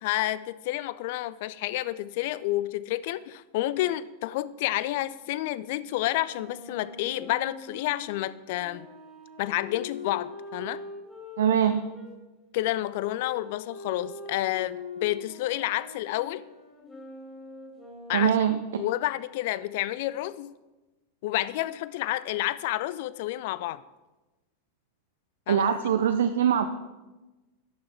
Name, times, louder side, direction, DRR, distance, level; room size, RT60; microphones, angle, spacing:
voice 1, 0.0-8.9 9.4-10.8 12.5-16.4 18.1-18.3 18.8-20.5 21.2-23.8 25.5-25.7, left 15 dB, 50° left, 17 dB, 0.3 m, -30 dB
Wind instrument woodwind instrument, 6.3-12.1 12.9-18.7, left 4 dB, 10° left, 2.7 m, -43 dB
voice 2, 11.4-11.8 18.1-18.6 25.5-26.7, right 9 dB, 60° right, 8 dB, 0.4 m, -22 dB
11.0 x 5.8 x 4.4 m, 1.1 s
figure-of-eight pair, 90°, 0 cm